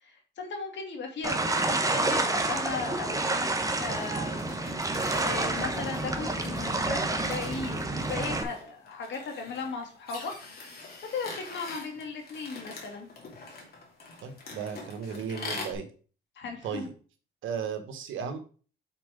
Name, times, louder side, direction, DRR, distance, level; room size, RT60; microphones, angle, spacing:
voice 1, 0.0-3.5 3.8-4.5 5.1-10.3 11.1-13.1 16.4-16.8, left 4 dB, 65° left, 3 dB, 2.2 m, -36 dB
sound 1, 1.2-8.4, right 2 dB, 15° right, 1.1 m, -29 dB
sound 2, 3.7-15.7, left 3 dB, 50° left, 2.6 m, -44 dB
voice 2, 14.2-15.9 16.6-16.9 17.4-18.4, right 7 dB, 80° right, 7 dB, 1.3 m, -35 dB
5.9 x 4.1 x 5.1 m, 0.39 s
cardioid pair, 90°, 20 cm